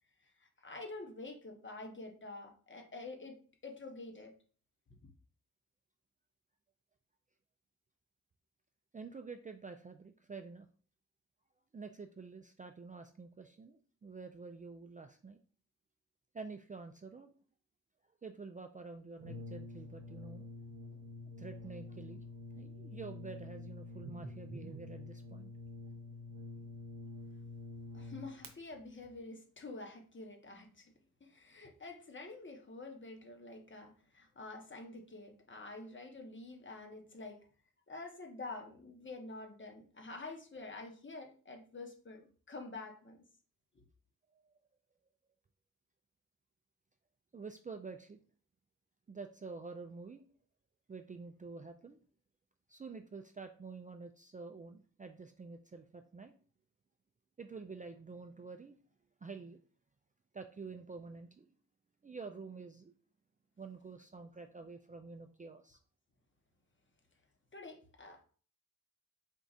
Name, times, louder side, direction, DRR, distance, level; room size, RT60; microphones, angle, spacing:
voice 1, 0.2-4.3 27.9-30.9 31.2-37.4 37.9-43.2 43.7-43.8 67.5-68.2, left 3 dB, 35° left, 3 dB, 1.0 m, -48 dB
voice 2, 8.9-10.7 11.7-15.4 16.3-17.3 18.2-20.5 21.4-22.2 22.6-25.5 44.3-44.5 47.3-48.2 49.1-50.2 50.9-52.0 52.7-56.3 57.4-58.8 59.2-59.6 60.3-61.5 62.0-62.9 63.6-65.8, right 4 dB, 25° right, 6 dB, 0.4 m, -48 dB
Brass instrument, 19.2-28.5, left 2 dB, 85° right, 0.8 m, -48 dB
4.5 x 2.4 x 4.0 m, 0.41 s
cardioid pair, 60°, 33 cm